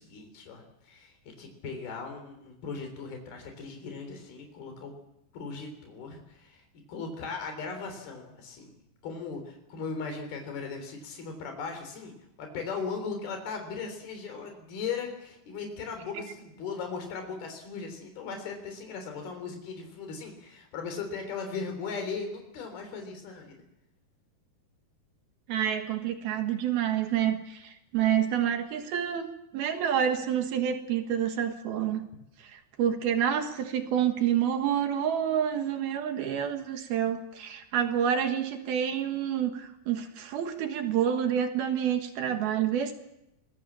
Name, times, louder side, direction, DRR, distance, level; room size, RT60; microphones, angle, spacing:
voice 1, 0.0-4.9 5.3-6.6 6.9-8.7 9.0-12.1 12.4-23.6, left 5 dB, 75° left, 5 dB, 5.5 m, -38 dB
voice 2, 25.5-29.3 29.5-32.1 32.4-42.9, right 9 dB, 75° right, 6 dB, 3.3 m, -28 dB
25.0 x 20.0 x 7.5 m, 0.85 s
omnidirectional pair, 4.5 m